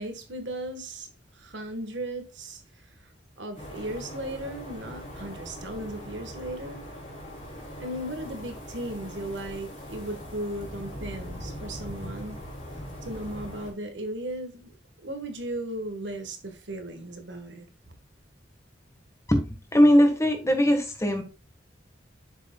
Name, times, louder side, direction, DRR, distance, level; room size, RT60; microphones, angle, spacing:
voice 1, 0.0-6.9 7.8-12.4 13.0-14.7 15.0-17.7, right 1 dB, 75° right, 1.3 m, -36 dB
sound 1, 3.6-13.7, equal, 40° left, 3.1 m, -41 dB
voice 2, 19.7-21.2, equal, 15° left, 1.3 m, -20 dB
7.9 x 6.5 x 2.2 m
head